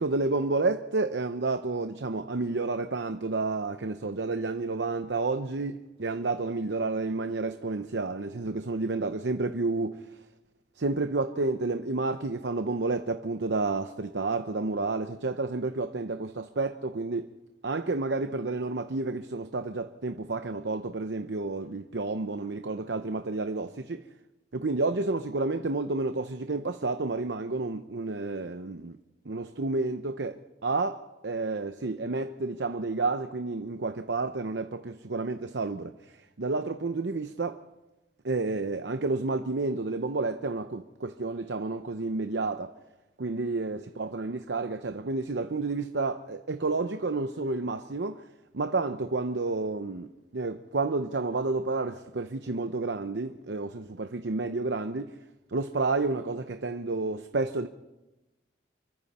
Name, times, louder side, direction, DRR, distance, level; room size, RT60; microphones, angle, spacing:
voice 1, 0.0-10.0 10.8-17.3 17.6-24.0 24.5-29.0 29.2-37.6 38.2-42.7 43.2-48.2 48.5-55.2 55.5-57.7, right 3 dB, 80° right, 0.8 m, -30 dB
26.5 x 23.5 x 4.3 m
head